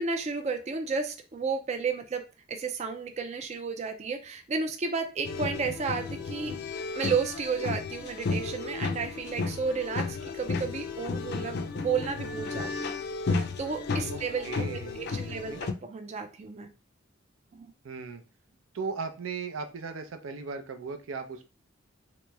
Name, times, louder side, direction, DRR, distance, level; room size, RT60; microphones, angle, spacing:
voice 1, 0.0-2.2 2.5-6.6 6.9-12.9 13.3-16.7 17.5-17.7, right 5 dB, 35° right, 5 dB, 0.4 m, -32 dB
sound 1, 5.2-15.7, left 4 dB, 55° left, 0.4 m, -33 dB
voice 2, 14.4-15.6 17.8-18.2 18.7-21.5, right 4 dB, 80° right, 7 dB, 0.5 m, -37 dB
3.0 x 2.9 x 3.4 m, 0.33 s
head